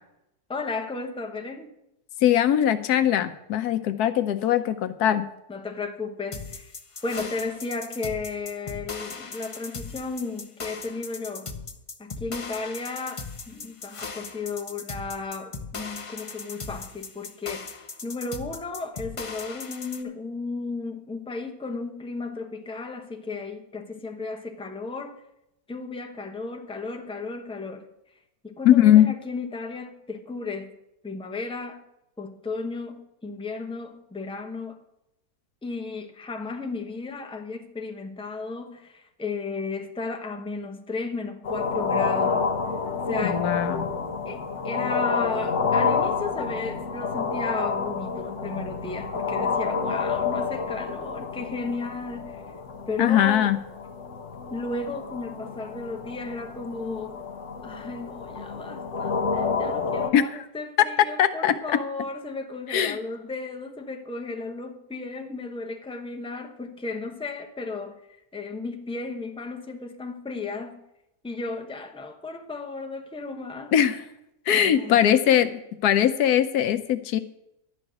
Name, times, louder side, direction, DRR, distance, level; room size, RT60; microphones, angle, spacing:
voice 1, 0.5-1.7 5.5-6.7 7.0-11.5 12.0-17.7 18.0-25.2 25.7-27.9 28.4-30.8 31.0-31.8 32.2-34.8 35.6-42.5 43.1-43.5 44.3-52.4 52.9-53.5 54.5-57.2 57.6-70.8 71.2-73.7 74.6-75.4, left 3 dB, 5° left, 0.8 m, -34 dB
voice 2, 2.2-5.2 28.6-29.1 43.2-43.9 53.0-53.6 60.1-60.2 61.0-61.6 62.7-63.0 73.7-74.0 74.5-77.2, left 10 dB, 80° left, 1.3 m, -20 dB
sound 1, 6.3-20.0, left 4 dB, 35° left, 0.6 m, -38 dB
sound 2, 41.4-60.1, left 5 dB, 55° left, 1.2 m, -29 dB
11.5 x 6.0 x 9.2 m
omnidirectional pair, 1.7 m